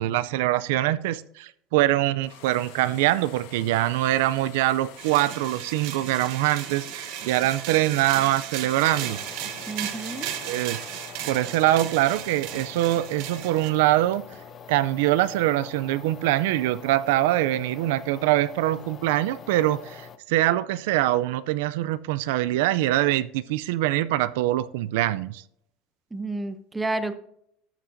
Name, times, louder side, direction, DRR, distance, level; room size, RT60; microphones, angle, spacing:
voice 1, 0.0-9.2 10.5-10.8 11.3-14.2 14.7-25.4, right 15 dB, 80° right, 0.4 m, -23 dB
sound 1, 2.2-11.6 11.9-14.4, left 9 dB, 75° left, 1.3 m, -48 dB
sound 2, 5.0-13.7, right 12 dB, 60° right, 1.0 m, -36 dB
sound 3, 8.9-20.2, left 6 dB, 30° left, 0.6 m, -44 dB
voice 2, 9.7-10.3 26.1-27.2, right 2 dB, 10° right, 0.6 m, -30 dB
12.5 x 7.3 x 2.6 m
supercardioid pair, 145°, 0 cm